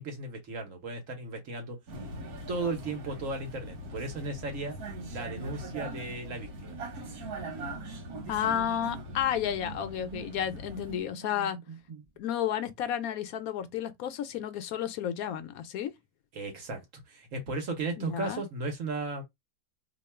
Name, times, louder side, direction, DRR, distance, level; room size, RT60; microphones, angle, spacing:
voice 1, 0.0-1.8 2.5-4.8 5.1-6.8 16.3-19.2, right 3 dB, 60° right, 1.4 m, -35 dB
Vehicle, 1.9-11.0, right 1 dB, 90° right, 1.5 m, -41 dB
sound 1, 4.8-12.2, right 8 dB, 35° right, 0.7 m, -48 dB
voice 2, 8.3-11.6 12.2-15.9 18.0-18.4, left 10 dB, 75° left, 1.1 m, -32 dB
3.0 x 2.3 x 4.3 m
omnidirectional pair, 1.5 m